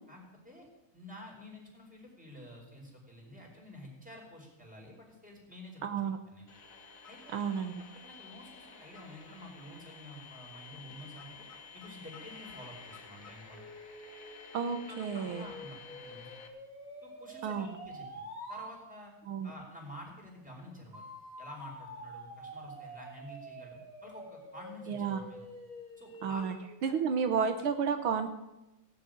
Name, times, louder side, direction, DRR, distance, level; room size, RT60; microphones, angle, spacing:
voice 1, 0.1-0.7 0.9-6.0 6.3-6.4 7.1-7.4 7.9-11.4 11.7-13.6 14.8-16.3 17.0-19.1 19.4-21.1 21.4-25.5 26.0-26.4 26.8-26.9, left 1 dB, 5° right, -2 dB, 4.5 m, -50 dB
voice 2, 5.8-6.2 7.3-7.7 14.5-15.5 17.4-17.8 19.3-19.5 24.9-25.3 26.2-26.6 26.8-28.3, right 6 dB, 85° right, 7 dB, 1.9 m, -31 dB
sound 1, 6.5-16.5, left 5 dB, 45° left, 1.7 m, -51 dB
sound 2, 13.5-18.7 20.9-26.8, right 1 dB, 20° right, 2.3 m, -47 dB
17.0 x 7.6 x 9.0 m, 0.92 s
omnidirectional pair, 2.3 m